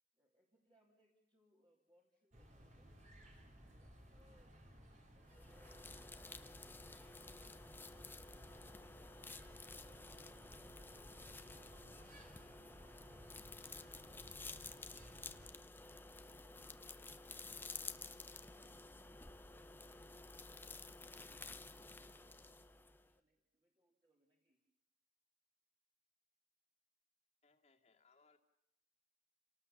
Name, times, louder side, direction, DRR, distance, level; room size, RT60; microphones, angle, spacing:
voice 1, 0.1-2.9 3.6-8.5 16.1-18.6 21.0-24.6, equal, 25° right, -3 dB, 3.5 m, -76 dB
sound 1, 2.3-15.5, equal, 45° right, 4.1 m, -60 dB
sound 2, 5.3-23.1, left 3 dB, 10° left, 0.8 m, -53 dB
voice 2, 27.4-28.4, left 4 dB, 35° left, 4 dB, 2.2 m, -71 dB
29.0 x 18.5 x 7.2 m, 0.84 s
head